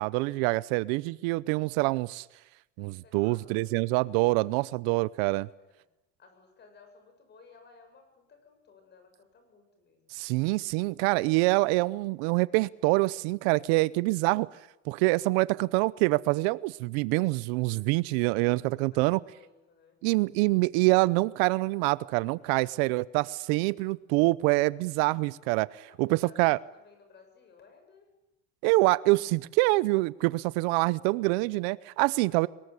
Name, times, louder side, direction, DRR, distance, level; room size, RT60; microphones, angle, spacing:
voice 1, 0.0-2.2 2.8-5.5 10.1-14.5 14.9-19.2 20.0-26.6 28.6-32.5, right 22 dB, 75° right, 0.8 m, -26 dB
voice 2, 3.0-3.7 5.3-5.9 6.2-10.3 18.6-20.3 22.6-22.8 25.8-28.1 32.3-32.5, left 4 dB, 30° left, 7.7 m, -58 dB
23.0 x 21.5 x 9.8 m
supercardioid pair, 135°, 32 cm